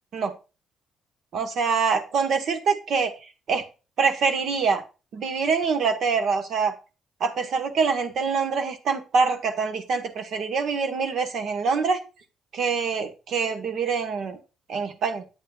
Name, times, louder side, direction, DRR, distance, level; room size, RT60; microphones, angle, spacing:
voice 1, 1.3-3.1 3.5-3.6 4.0-4.8 5.1-6.7 7.2-12.0 12.5-14.4 14.7-15.2, right 5 dB, 65° right, 7 dB, 1.6 m, -25 dB
8.7 x 8.4 x 2.6 m, 0.31 s
hypercardioid pair, 55°, 0 cm